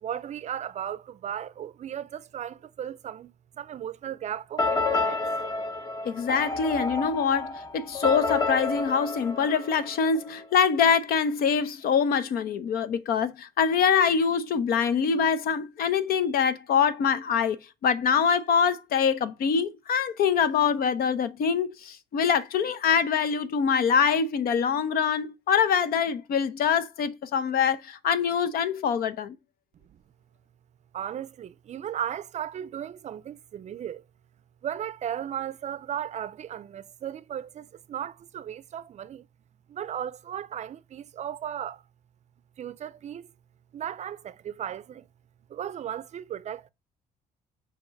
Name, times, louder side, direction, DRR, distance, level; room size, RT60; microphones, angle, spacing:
voice 1, 0.0-5.2 30.9-34.0 34.6-39.3 39.7-41.8 42.6-43.3 43.7-45.1 45.5-46.7, right 10 dB, 45° right, 0.5 m, -36 dB
sound 1, 4.6-10.3, left 3 dB, 25° left, 0.8 m, -30 dB
voice 2, 6.0-17.6 17.8-29.3, left 6 dB, 65° left, 0.8 m, -24 dB
7.1 x 3.0 x 5.2 m
cardioid pair, 110°, 17 cm